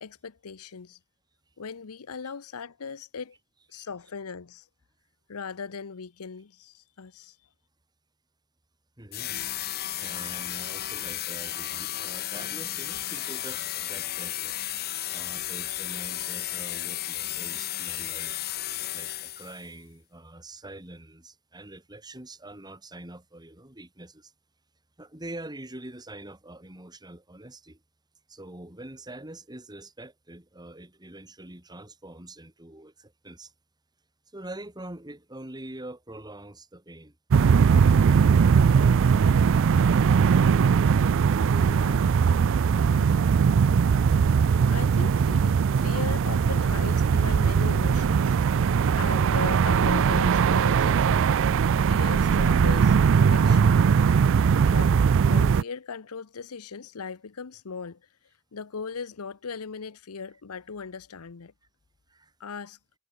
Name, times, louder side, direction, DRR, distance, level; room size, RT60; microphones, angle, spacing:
voice 1, 0.0-1.0 1.6-3.4 3.7-4.7 5.3-7.4 41.5-42.1 42.8-43.2 44.7-48.3 49.0-51.3 51.9-53.8 54.6-54.9 55.2-58.0 58.5-61.5 62.4-62.8, left 5 dB, 75° left, 0.8 m, -38 dB
voice 2, 9.0-9.4 10.0-18.4 18.9-24.3 25.0-27.8 28.3-33.5 34.3-37.2 62.1-62.3, right 1 dB, 20° right, 3.0 m, -44 dB
sound 1, 9.1-19.7, left 13 dB, 45° left, 0.7 m, -33 dB
sound 2, 37.3-55.6, right 6 dB, 60° right, 0.4 m, -20 dB
head